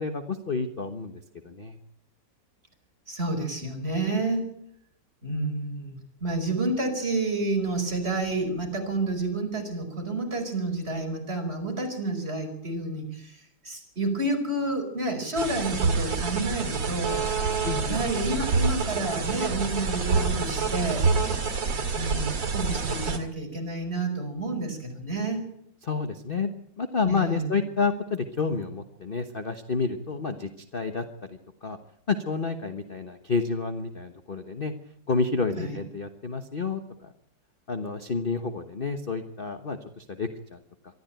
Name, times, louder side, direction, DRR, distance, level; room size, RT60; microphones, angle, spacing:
voice 1, 0.0-1.8 17.6-18.0 25.8-26.5 26.8-31.8 32.1-34.7 35.1-37.1 37.7-40.6, left 4 dB, 35° left, 7 dB, 1.2 m, -30 dB
voice 2, 3.1-4.5 5.2-17.3 17.9-21.3 21.9-25.4 27.0-27.6 35.6-35.8, right 2 dB, 35° right, 3 dB, 5.4 m, -30 dB
sound 1, 15.4-23.2, right 4 dB, 75° right, 3.0 m, -27 dB
24.0 x 13.5 x 9.1 m, 0.73 s
omnidirectional pair, 2.0 m